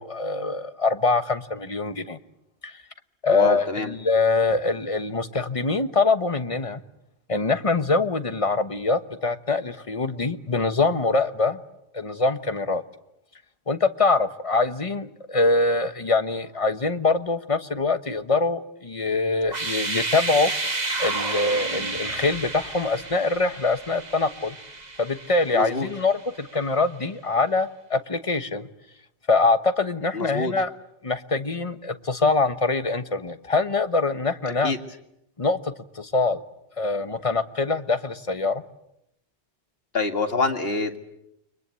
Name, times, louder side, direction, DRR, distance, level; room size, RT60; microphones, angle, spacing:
voice 1, 0.0-2.2 2.6-2.8 3.2-6.8 7.3-11.6 11.9-12.8 13.7-20.5 21.0-24.6 25.0-28.7 29.3-30.7 31.0-34.7 35.4-36.4 36.8-38.6, left 3 dB, 35° left, 11 dB, 1.2 m, -24 dB
voice 2, 3.3-3.9 25.5-25.9 30.1-30.5 34.6-34.8 39.9-41.0, left 3 dB, 70° left, 6 dB, 2.3 m, -25 dB
sound 1, 19.4-26.3, right 3 dB, 40° right, 2.0 m, -31 dB
29.5 x 23.5 x 8.4 m, 0.81 s
omnidirectional pair, 1.1 m